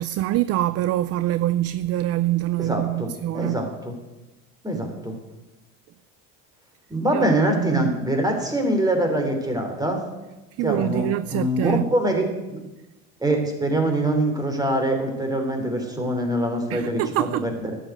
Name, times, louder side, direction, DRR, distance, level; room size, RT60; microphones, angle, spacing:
voice 1, 0.0-3.7 7.1-7.3 7.6-7.9 10.6-11.9 16.7-17.5, right 14 dB, 45° right, 0.4 m, -25 dB
voice 2, 2.6-3.9 4.6-5.1 6.9-10.0 10.6-12.6 13.2-17.7, right 1 dB, 10° right, 3.1 m, -24 dB
11.5 x 7.7 x 9.4 m
supercardioid pair, 110°, 34 cm